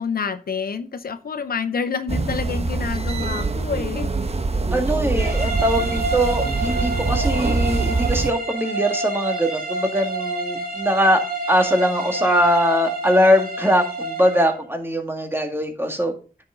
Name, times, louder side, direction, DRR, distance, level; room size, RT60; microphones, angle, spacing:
voice 1, 0.0-4.1, left 6 dB, 80° left, 11 dB, 0.7 m, -28 dB
sound 1, 2.1-8.3, right 3 dB, 40° right, 1.1 m, -24 dB
voice 2, 4.7-11.2 11.5-16.1, equal, 15° right, 5 dB, 1.9 m, -21 dB
sound 2, 5.2-14.6, right 2 dB, 70° right, 2.8 m, -28 dB
9.7 x 5.8 x 3.8 m, 0.37 s
cardioid pair, 40°, 15 cm